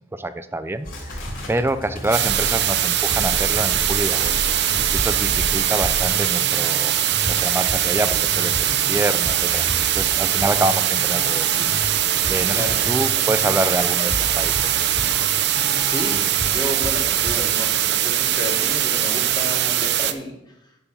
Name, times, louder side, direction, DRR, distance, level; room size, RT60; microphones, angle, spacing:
voice 1, 0.1-4.6 4.9-7.0 7.3-9.7 9.9-11.8 12.3-14.7, right 1 dB, 15° right, 12 dB, 0.4 m, -26 dB
sound 1, 0.7-6.4, equal, 80° left, 2.2 m, -33 dB
sound 2, 0.8-17.6, equal, 50° left, 2.0 m, -34 dB
sound 3, 2.1-20.1, right 11 dB, 65° right, 0.6 m, -21 dB
voice 2, 15.7-16.1 16.4-20.3, left 1 dB, 25° left, 1 dB, 1.6 m, -31 dB
6.9 x 5.4 x 7.0 m, 0.84 s
head